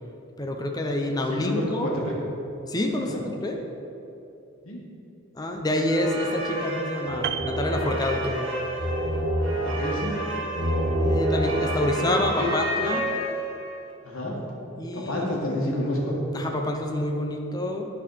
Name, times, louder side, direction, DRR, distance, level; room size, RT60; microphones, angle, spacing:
voice 1, 0.4-1.9 2.7-3.6 5.3-8.5 11.0-13.1 14.8-15.6 16.3-17.9, left 1 dB, 20° left, 2 dB, 0.5 m, -27 dB
voice 2, 1.3-2.1 3.0-3.2 4.6-4.8 9.6-10.1 12.0-12.5 14.0-14.4 14.9-16.2, left 1 dB, 85° left, -2 dB, 1.6 m, -29 dB
sound 1, 5.8-13.7, right 1 dB, 75° right, 1.5 m, -28 dB
Piano, 7.2-8.7 9.0-9.2, right 9 dB, 55° right, 0.3 m, -34 dB
9.3 x 4.1 x 5.6 m, 2.9 s
head